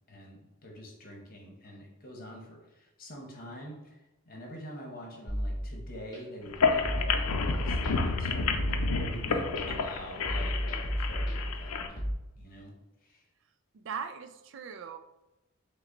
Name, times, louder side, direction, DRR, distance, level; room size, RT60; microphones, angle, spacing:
voice 1, 0.1-12.0 12.4-12.7 13.0-13.2, equal, 40° left, 0 dB, 1.0 m, -46 dB
sound 1, 5.3-6.2 6.8-8.2 8.5-9.6 10.2-12.1, equal, 20° left, 1.2 m, -33 dB
sound 2, 6.4-11.9, left 4 dB, 85° left, 0.5 m, -30 dB
voice 2, 13.7-15.0, right 6 dB, 55° right, 9 dB, 0.3 m, -40 dB
5.7 x 2.2 x 3.9 m, 1.0 s
head